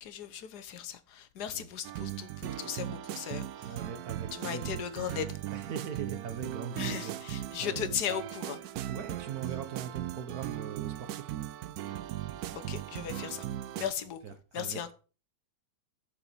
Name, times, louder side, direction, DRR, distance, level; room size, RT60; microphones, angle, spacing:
voice 1, 0.0-3.8 4.3-5.4 6.7-8.8 12.5-13.5 13.8-14.9, left 9 dB, 60° left, 1.3 m, -37 dB
sound 1, 1.8-13.9, right 12 dB, 80° right, 0.8 m, -38 dB
voice 2, 3.6-4.8 5.5-7.2 7.6-8.0 8.9-11.3 13.8-13.9 14.2-14.9, right 7 dB, 55° right, 1.4 m, -40 dB
7.0 x 5.6 x 6.6 m
omnidirectional pair, 2.1 m